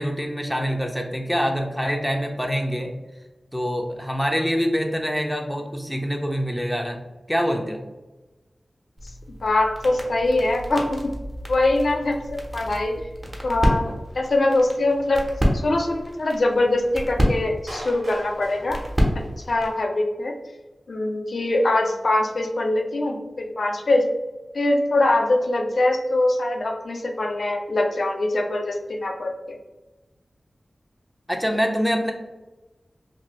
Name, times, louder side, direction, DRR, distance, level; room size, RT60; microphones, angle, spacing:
voice 1, 0.0-2.9 3.5-7.0 7.3-7.8 31.3-32.1, equal, ahead, 2 dB, 0.5 m, -25 dB
sound 1, 9.0-19.8, equal, 30° right, 0.8 m, -29 dB
voice 2, 9.4-11.1 11.5-12.2 12.5-13.1 13.4-15.2 15.5-18.8 19.5-20.4 20.9-24.1 24.5-29.6, left 2 dB, 75° left, 3 dB, 0.4 m, -23 dB
Clapping, 17.7-19.7, right 1 dB, 70° right, 0.8 m, -41 dB
2.6 x 2.6 x 3.0 m, 1.1 s
wide cardioid pair, 55°, 0 cm